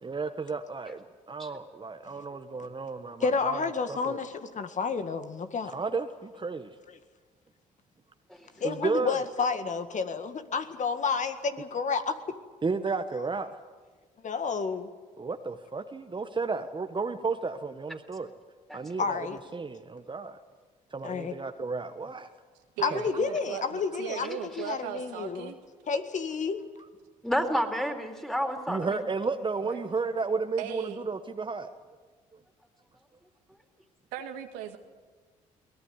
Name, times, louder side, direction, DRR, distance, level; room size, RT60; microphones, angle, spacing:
voice 1, 0.0-3.6 3.9-4.2 5.7-6.7 8.6-9.2 12.6-13.5 15.2-18.3 18.7-19.3 19.5-20.4 20.9-22.3 22.9-23.0 28.7-31.7, right 4 dB, 30° right, 7 dB, 1.4 m, -33 dB
voice 2, 3.2-5.7 8.6-12.4 14.2-14.9 19.0-19.4 21.0-21.3 22.8-25.5 25.9-26.7, left 5 dB, 45° left, 9 dB, 1.9 m, -30 dB
voice 3, 22.8-25.6 29.6-29.9 30.6-31.0 34.1-34.8, right 10 dB, 85° right, 5 dB, 2.0 m, -37 dB
voice 4, 27.2-29.0, equal, ahead, 5 dB, 3.9 m, -30 dB
23.0 x 18.5 x 9.7 m, 1.4 s
hypercardioid pair, 60°, 17 cm